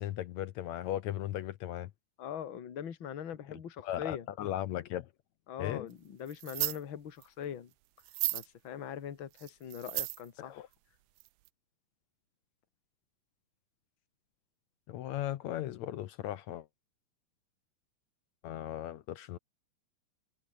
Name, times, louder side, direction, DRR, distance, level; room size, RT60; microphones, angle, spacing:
voice 1, 0.0-1.9 3.8-5.1 5.6-5.9 10.4-10.7 14.9-16.7 18.4-19.4, left 12 dB, 70° left, 1.9 m, -37 dB
voice 2, 2.2-4.3 5.5-7.7 8.3-10.7, left 9 dB, 40° left, 2.4 m, -41 dB
sound 1, 6.3-6.8 7.2-7.3 8.0-8.5 9.4-10.3 11.2-11.3 11.5-11.6, right 19 dB, 80° right, 2.0 m, -34 dB
omnidirectional pair, 3.8 m